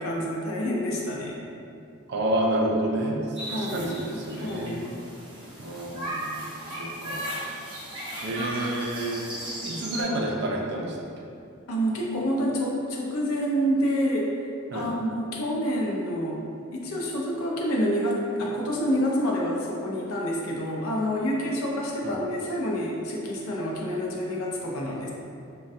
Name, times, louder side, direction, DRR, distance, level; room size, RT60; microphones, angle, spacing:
voice 1, 0.0-1.4 3.4-3.9 4.3-4.9 11.7-14.3 14.7-16.4 16.7-25.1, equal, 80° left, -2 dB, 0.5 m, -28 dB
voice 2, 2.1-3.2 3.5-4.9 5.6-6.3 6.6-7.4 8.2-9.2 9.6-11.0 14.7-14.9 22.0-22.2, right 1 dB, 50° right, -1 dB, 0.4 m, -29 dB
sound 1, 3.4-10.0, right 1 dB, 25° right, 0.7 m, -36 dB
3.2 x 2.2 x 2.6 m, 2.5 s
head